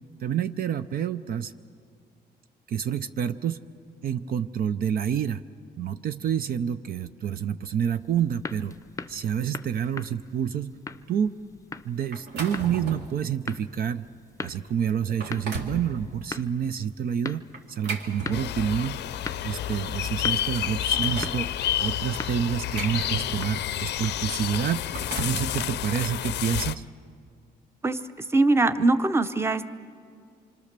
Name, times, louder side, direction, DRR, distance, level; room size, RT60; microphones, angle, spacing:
voice 1, 0.2-1.5 2.7-3.6 4.0-5.4 5.8-8.7 9.1-10.7 11.1-11.3 11.8-14.0 14.4-17.4 17.7-19.0 19.4-21.5 21.8-24.8 25.2-26.8, right 8 dB, 60° right, 11 dB, 0.6 m, -28 dB
sound 1, 7.9-24.4, left 3 dB, 20° left, 0.6 m, -42 dB
sound 2, 12.1-13.2 13.7-13.9 14.5-14.6 15.0-15.8 17.5-18.9 19.9-20.0 20.3-21.4 22.2-23.7 24.7-25.5, right 3 dB, 85° right, 2.4 m, -36 dB
sound 3, 18.3-26.8, left 12 dB, 80° left, 0.6 m, -29 dB
voice 2, 27.8-29.7, right 2 dB, 15° right, 11 dB, 0.8 m, -22 dB
26.0 x 25.5 x 6.7 m, 2.2 s
cardioid pair, 120°, 17 cm